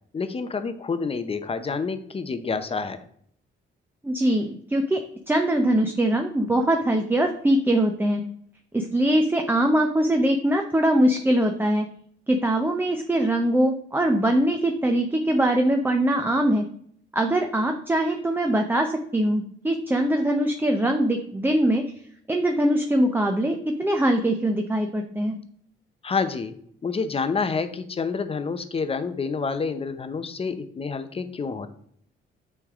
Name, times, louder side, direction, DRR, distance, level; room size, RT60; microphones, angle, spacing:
voice 1, 0.1-3.0 26.0-26.5 26.8-31.7, left 4 dB, 30° left, 10 dB, 0.7 m, -28 dB
voice 2, 4.0-5.0 5.3-8.2 8.7-11.9 12.3-16.6 17.1-21.8 22.3-25.4, right 1 dB, 10° right, 4 dB, 0.7 m, -22 dB
8.6 x 3.4 x 3.6 m, 0.64 s
cardioid pair, 90°, 20 cm